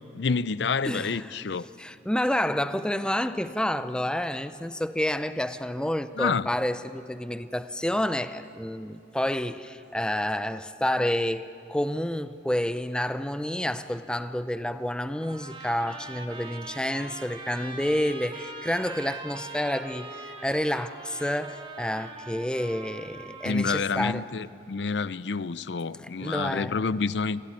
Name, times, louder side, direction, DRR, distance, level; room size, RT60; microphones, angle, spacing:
voice 1, 0.1-1.7 6.2-6.5 23.4-27.4, left 4 dB, 70° left, 0.5 m, -28 dB
voice 2, 0.8-1.4 1.8-24.3 26.0-26.9, left 1 dB, 5° left, 0.5 m, -29 dB
Trumpet, 15.2-23.9, right 3 dB, 30° right, 1.9 m, -42 dB
23.5 x 16.0 x 9.7 m
head